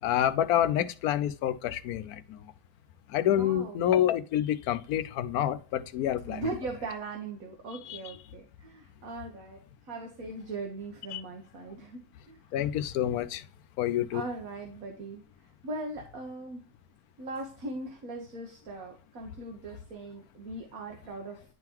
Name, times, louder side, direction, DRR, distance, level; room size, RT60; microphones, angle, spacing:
voice 1, 0.0-2.4 3.1-6.5 7.9-8.0 11.1-11.2 12.5-13.4 13.8-14.2, left 11 dB, 80° left, 1.1 m, -28 dB
voice 2, 3.3-3.8 6.2-12.4 14.1-15.2 15.6-16.6 17.2-21.4, right 2 dB, 70° right, 1.5 m, -39 dB
10.5 x 3.8 x 2.9 m
omnidirectional pair, 1.6 m